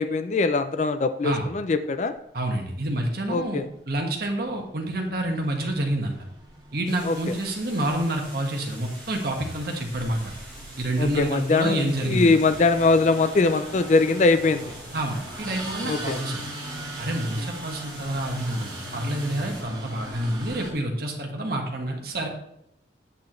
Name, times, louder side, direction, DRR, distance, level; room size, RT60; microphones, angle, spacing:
voice 1, 0.0-2.1 3.3-3.6 7.0-7.2 11.0-14.7 15.8-16.2, left 3 dB, 40° left, 10 dB, 0.4 m, -22 dB
sound 1, 1.9-2.0 2.5-20.7, right 1 dB, 25° right, 2.0 m, -40 dB
voice 2, 2.3-6.2 6.7-10.3 10.8-12.4 14.9-16.5 17.0-22.3, right 1 dB, 55° right, 2 dB, 1.5 m, -28 dB
sound 2, 6.8-19.6, right 1 dB, 5° left, 3.6 m, -46 dB
8.4 x 8.3 x 3.1 m, 0.76 s
head